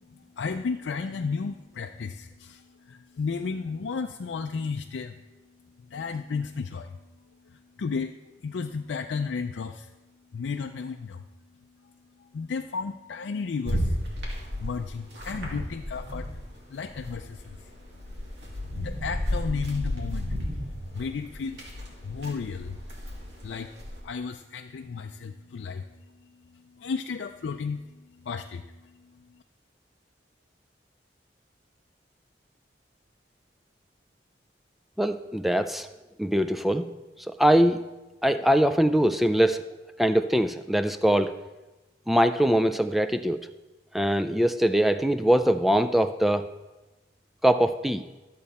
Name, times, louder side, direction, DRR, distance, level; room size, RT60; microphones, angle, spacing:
voice 1, 0.1-5.2 5.8-7.0 7.4-9.9 10.3-11.2 11.8-11.9 12.2-14.0 14.3-16.3 16.7-17.7 18.7-20.4 20.9-22.8 23.4-23.7 24.0-29.4, left 5 dB, 85° left, 5 dB, 0.4 m, -34 dB
sound 1, 13.6-16.5 16.8-24.0, equal, 75° right, 2.2 m, -33 dB
voice 2, 35.0-35.9 36.2-36.9 37.3-37.8 38.2-39.6 40.0-41.3 42.1-43.4 43.9-46.5 47.4-48.0, equal, ahead, 10 dB, 0.3 m, -22 dB
12.5 x 7.5 x 4.2 m, 1.1 s
head